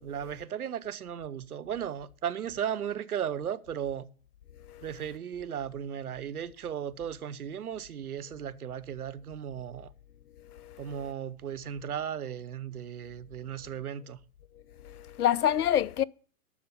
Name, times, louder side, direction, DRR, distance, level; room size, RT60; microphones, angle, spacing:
voice 1, 0.0-4.1 4.8-9.9 10.8-14.2, right 9 dB, 80° right, 0.9 m, -36 dB
voice 2, 10.4-11.0 14.8-16.0, left 10 dB, 90° left, 0.6 m, -28 dB
12.0 x 4.5 x 8.2 m
hypercardioid pair, 130°, 44 cm